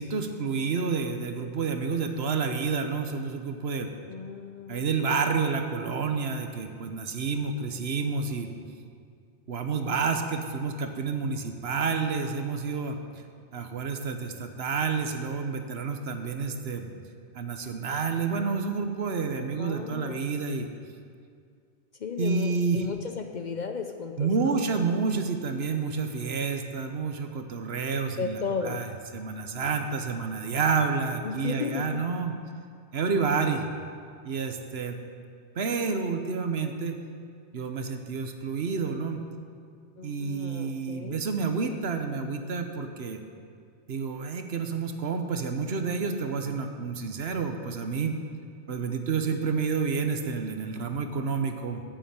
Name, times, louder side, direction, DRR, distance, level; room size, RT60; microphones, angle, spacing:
voice 1, 0.0-3.9 4.7-8.5 9.5-13.0 13.5-16.9 17.3-20.7 22.2-22.8 24.2-32.3 32.9-33.6 34.2-35.0 35.6-37.0 37.5-39.2 40.0-43.2 43.9-48.2 48.7-51.8, right 5 dB, 70° right, 6 dB, 1.1 m, -29 dB
voice 2, 4.1-5.0 19.6-20.3 22.0-24.6 28.2-28.8 31.2-32.0 40.0-41.2, left 5 dB, 55° left, 6 dB, 0.6 m, -34 dB
8.9 x 7.2 x 8.8 m, 2.2 s
omnidirectional pair, 1.1 m